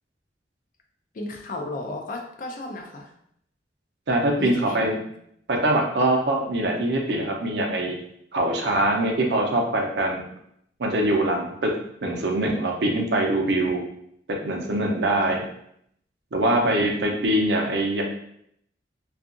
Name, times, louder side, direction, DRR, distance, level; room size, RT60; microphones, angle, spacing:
voice 1, 1.1-3.1 4.4-5.1, left 2 dB, 45° left, 2 dB, 0.4 m, -34 dB
voice 2, 4.1-5.0 5.5-8.0 8.3-10.2 10.8-11.7 12.0-13.8 14.3-15.4 16.3-18.0, right 1 dB, 65° right, 1 dB, 0.5 m, -23 dB
2.7 x 2.3 x 2.5 m, 0.71 s
head